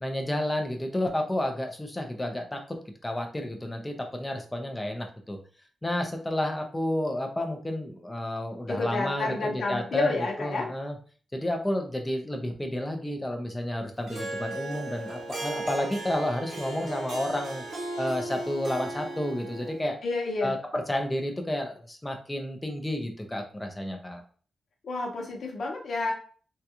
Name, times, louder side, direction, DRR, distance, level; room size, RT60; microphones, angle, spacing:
voice 1, 0.0-2.8 3.0-5.4 5.8-11.0 11.3-17.6 18.0-20.0 20.4-24.2, left 1 dB, 10° left, 3 dB, 0.5 m, -31 dB
voice 2, 8.7-10.7 20.0-20.5 24.8-26.1, left 3 dB, 55° left, 0 dB, 0.8 m, -29 dB
Harp, 14.1-19.9, right 2 dB, 60° right, 0.8 m, -36 dB
3.6 x 2.3 x 2.8 m, 0.42 s
wide cardioid pair, 175°, 0 cm